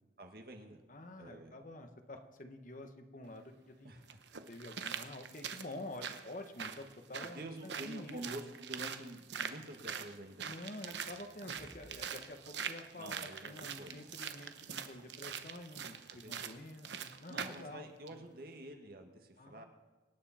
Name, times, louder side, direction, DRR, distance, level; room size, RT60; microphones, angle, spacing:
voice 1, 0.2-0.8 1.2-1.6 3.8-4.2 7.2-10.6 11.9-12.2 13.0-14.5 15.2-15.3 16.1-16.3 17.3-19.6, right 1 dB, 55° right, 3 dB, 1.9 m, -49 dB
voice 2, 0.9-3.9 4.5-8.2 10.4-18.2 19.4-19.6, left 1 dB, 45° left, 6 dB, 1.2 m, -48 dB
sound 1, 3.2-3.3 4.1-17.7 18.1-18.2, right 7 dB, 75° right, 0.9 m, -44 dB
sound 2, 11.3-12.2 12.5-12.6, right 1 dB, 25° right, 0.7 m, -57 dB
25.0 x 9.7 x 4.3 m, 1.2 s
head